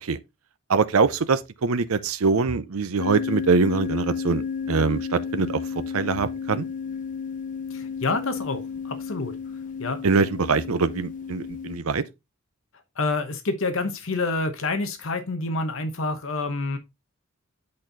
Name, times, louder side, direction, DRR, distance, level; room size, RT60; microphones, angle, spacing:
voice 1, 0.7-5.6 5.9-6.6 10.0-12.0, right 4 dB, 75° right, 0.6 m, -23 dB
sound 1, 3.0-11.8, left 6 dB, 35° left, 0.5 m, -32 dB
voice 2, 7.7-9.3 9.8-10.0 13.0-16.8, left 3 dB, 60° left, 0.9 m, -28 dB
8.5 x 4.3 x 3.8 m
head